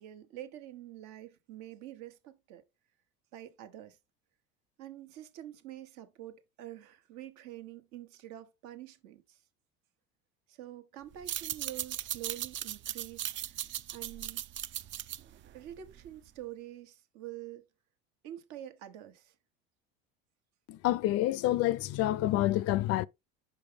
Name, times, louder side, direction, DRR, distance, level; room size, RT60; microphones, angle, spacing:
voice 1, 0.0-2.6 3.3-4.0 4.8-9.4 10.5-13.6 13.9-14.5 15.5-17.6 18.2-19.3, right 13 dB, 70° right, 1.3 m, -47 dB
sound 1, 11.1-16.3, right 12 dB, 40° right, 0.5 m, -38 dB
voice 2, 20.7-23.1, left 15 dB, 55° left, 0.4 m, -28 dB
5.9 x 5.3 x 3.4 m
supercardioid pair, 105°, 30 cm